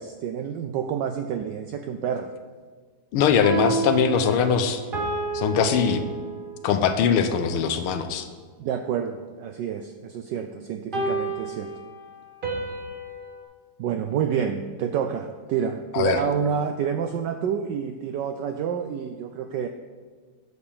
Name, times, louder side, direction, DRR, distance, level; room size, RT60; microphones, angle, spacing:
voice 1, 0.0-2.3 8.6-11.7 13.8-19.7, right 7 dB, 80° right, 7 dB, 0.9 m, -28 dB
voice 2, 3.1-4.8 5.3-6.0 6.6-8.3 15.9-16.2, left 7 dB, 80° left, 8 dB, 1.6 m, -21 dB
sound 1, 3.2-6.7 10.9-13.4, right 3 dB, 30° right, 1.0 m, -30 dB
8.6 x 6.8 x 5.5 m, 1.5 s
omnidirectional pair, 2.4 m